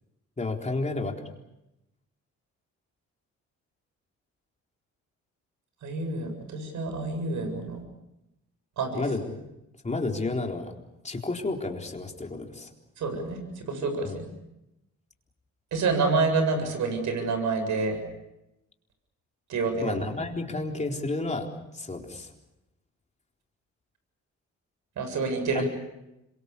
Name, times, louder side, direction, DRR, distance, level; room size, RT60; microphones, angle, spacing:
voice 1, 0.4-1.2 8.9-9.3 9.8-10.8 11.0-12.7 14.0-14.2 19.8-21.5 21.7-22.3 25.5-25.7, left 3 dB, 25° left, 2 dB, 4.0 m, -31 dB
voice 2, 5.8-7.8 8.8-9.0 13.0-14.2 15.7-18.0 19.5-20.0 25.0-25.7, right 3 dB, 70° right, 6 dB, 7.5 m, -28 dB
26.5 x 24.0 x 6.9 m, 0.91 s
cardioid pair, 90°, 30 cm